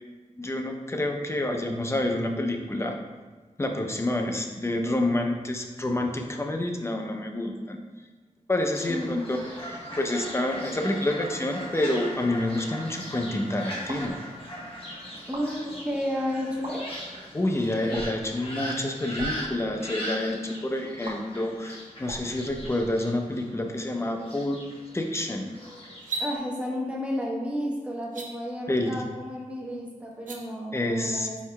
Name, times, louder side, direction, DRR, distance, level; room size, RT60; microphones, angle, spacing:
voice 1, 0.4-3.0 3.6-7.8 8.5-14.2 17.3-24.6 24.9-25.5 28.7-29.0 30.7-31.3, left 1 dB, 20° left, 3 dB, 0.5 m, -28 dB
Fowl, 8.7-26.4, equal, 45° left, 1.2 m, -39 dB
sound 1, 13.9-14.2 15.2-15.5 16.5-16.7 17.9-18.3 19.0-19.3 21.0-21.1 22.0-23.2, right 2 dB, 50° right, 0.7 m, -41 dB
voice 2, 15.3-16.9 26.2-31.4, equal, 10° right, -3 dB, 0.9 m, -32 dB
sound 2, 25.9-26.3 28.0-28.3 30.1-30.4, right 3 dB, 90° right, 0.5 m, -32 dB
4.6 x 4.5 x 2.2 m, 1.3 s
wide cardioid pair, 70°, 13 cm